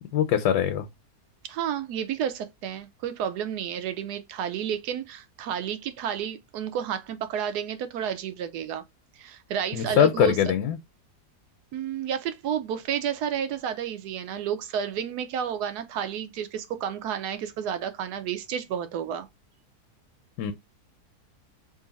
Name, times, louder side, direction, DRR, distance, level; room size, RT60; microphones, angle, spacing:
voice 1, 0.1-0.9 9.7-10.8 20.4-20.5, left 9 dB, 80° left, 1.1 m, -22 dB
voice 2, 1.4-8.8 9.2-10.3 11.7-19.3, right 9 dB, 80° right, 1.2 m, -31 dB
3.1 x 2.5 x 3.9 m
omnidirectional pair, 1.7 m